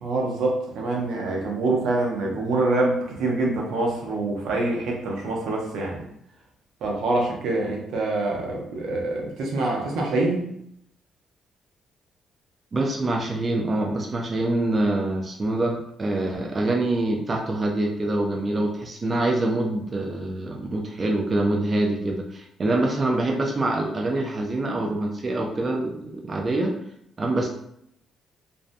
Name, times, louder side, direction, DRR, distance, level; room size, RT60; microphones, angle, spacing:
voice 1, 0.0-6.0 6.8-10.5, right 2 dB, 80° right, -1 dB, 0.6 m, -25 dB
voice 2, 12.7-26.7 27.2-27.5, right 2 dB, 35° right, 0 dB, 0.4 m, -25 dB
2.6 x 2.1 x 2.5 m, 0.74 s
cardioid pair, 90°, 0 cm